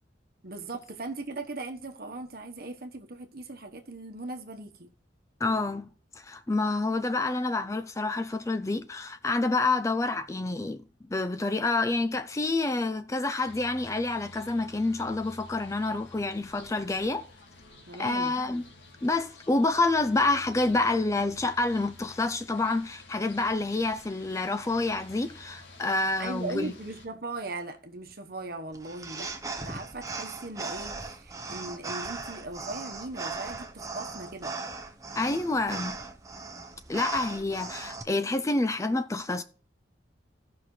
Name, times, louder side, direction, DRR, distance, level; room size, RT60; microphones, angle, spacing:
voice 1, 0.4-4.9 17.9-18.4 26.2-29.3 29.6-34.5, right 2 dB, 50° right, 1.1 m, -39 dB
voice 2, 5.4-5.9 6.2-10.8 11.1-17.3 18.0-18.6 19.0-26.7 35.2-36.0 36.9-39.4, left 2 dB, 15° left, 0.4 m, -28 dB
sound 1, 13.4-27.1, left 2 dB, 75° left, 2.0 m, -51 dB
sound 2, 28.7-38.0, right 3 dB, 15° right, 0.8 m, -38 dB
16.5 x 5.8 x 3.2 m
head